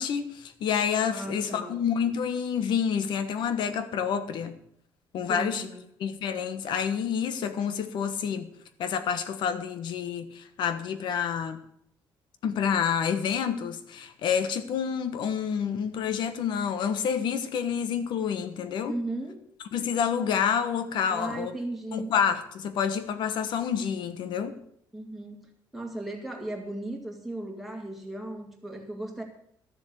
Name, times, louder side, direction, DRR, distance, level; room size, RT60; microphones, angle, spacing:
voice 1, 0.0-4.6 5.1-5.6 6.0-8.5 8.8-11.6 12.4-18.9 19.7-21.5 21.9-24.6, left 7 dB, 65° left, 10 dB, 1.3 m, -28 dB
voice 2, 1.1-1.8 5.1-5.8 18.9-19.4 21.1-22.1 24.9-25.5 25.7-29.2, right 1 dB, ahead, 0 dB, 2.0 m, -36 dB
13.0 x 7.0 x 8.1 m, 0.72 s
cardioid pair, 170°, 8 cm